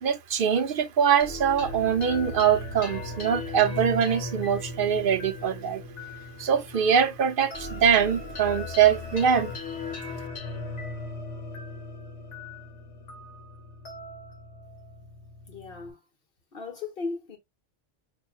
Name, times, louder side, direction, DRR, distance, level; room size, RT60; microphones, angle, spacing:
voice 1, 0.0-5.8 6.4-9.5, right 8 dB, 55° right, 0.7 m, -23 dB
sound 1, 1.2-15.9, left 2 dB, 85° left, 1.6 m, -38 dB
voice 2, 15.5-16.0 16.5-17.4, left 4 dB, 50° left, 1.4 m, -36 dB
5.8 x 3.0 x 2.4 m
omnidirectional pair, 1.2 m